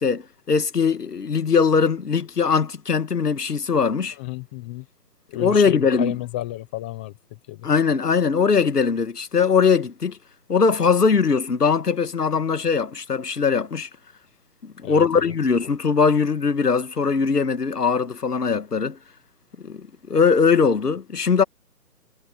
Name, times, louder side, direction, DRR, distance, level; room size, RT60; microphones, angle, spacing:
voice 1, 0.0-4.2 5.3-6.2 7.6-10.2 10.5-13.9 14.6-19.0 19.6-21.4, left 5 dB, 85° left, 1.9 m, -21 dB
voice 2, 4.2-4.8 5.3-7.1 7.5-7.6 14.8-15.0, left 17 dB, 5° left, 0.9 m, -31 dB
hypercardioid pair, 160°, 46 cm